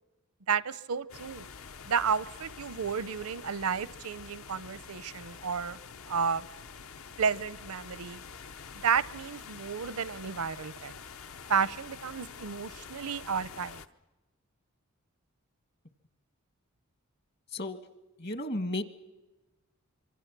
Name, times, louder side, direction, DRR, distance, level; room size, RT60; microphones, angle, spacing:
voice 1, 0.5-1.5 1.9-5.8 6.1-6.5 7.2-8.2 8.8-11.0 11.5-13.8, right 6 dB, 80° right, 18 dB, 0.7 m, -32 dB
sound 1, 1.1-13.9, left 6 dB, 70° left, 0.8 m, -47 dB
voice 2, 18.2-18.8, left 1 dB, 50° left, 10 dB, 1.4 m, -33 dB
26.5 x 24.5 x 6.0 m, 1.1 s
head